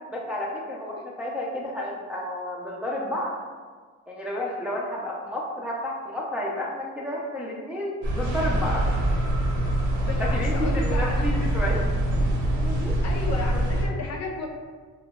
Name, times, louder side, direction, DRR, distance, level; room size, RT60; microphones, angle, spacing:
voice 1, 0.1-3.3 4.1-8.8 10.2-11.8 12.6-12.9, left 1 dB, 5° right, -4 dB, 0.3 m, -31 dB
sound 1, 8.0-13.8, right 1 dB, 70° right, 0.7 m, -24 dB
voice 2, 10.0-11.2 13.0-14.5, left 3 dB, 60° left, 0 dB, 0.6 m, -33 dB
2.1 x 2.0 x 3.4 m, 1.5 s
cardioid pair, 90°, 30 cm